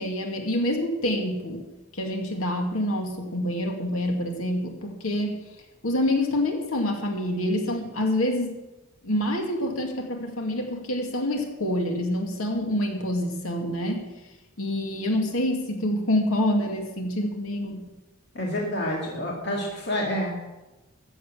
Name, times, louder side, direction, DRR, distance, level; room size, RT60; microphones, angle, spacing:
voice 1, 0.0-1.7 1.9-5.4 5.8-8.6 9.0-14.1 14.6-17.8, left 1 dB, 85° left, 3 dB, 2.2 m, -27 dB
voice 2, 18.3-20.4, left 1 dB, 55° left, -2 dB, 2.3 m, -28 dB
14.0 x 7.9 x 7.4 m, 1.0 s
head